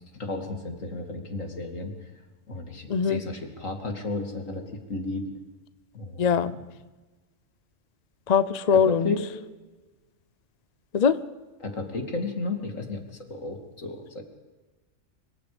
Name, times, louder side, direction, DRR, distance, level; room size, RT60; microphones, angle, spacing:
voice 1, 0.1-1.9 2.5-5.3 5.9-6.5 8.7-9.2 11.6-13.0 13.3-14.2, left 3 dB, 80° left, 4 dB, 3.1 m, -33 dB
voice 2, 2.9-3.2 6.2-6.5 8.3-9.1 10.9-11.2, left 6 dB, 40° left, 15 dB, 0.7 m, -21 dB
25.0 x 24.0 x 5.2 m, 1.2 s
omnidirectional pair, 1.3 m